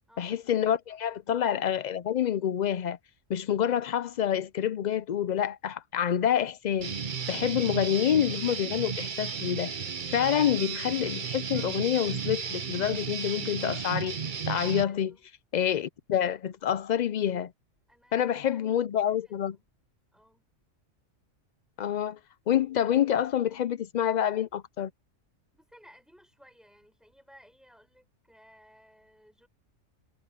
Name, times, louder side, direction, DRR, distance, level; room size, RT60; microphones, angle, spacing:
voice 1, 0.2-3.0 3.3-6.9 7.3-9.8 10.1-14.2 14.5-15.1 15.5-17.5 18.1-19.6 21.8-22.2 22.5-24.9, left 10 dB, 90° left, 0.4 m, -27 dB
Guitar, 6.8-14.8, right 6 dB, 40° right, 1.0 m, -34 dB
voice 2, 14.8-15.3 17.9-19.5 20.1-20.5 25.5-29.5, equal, ahead, 3.9 m, -58 dB
omnidirectional pair, 1.3 m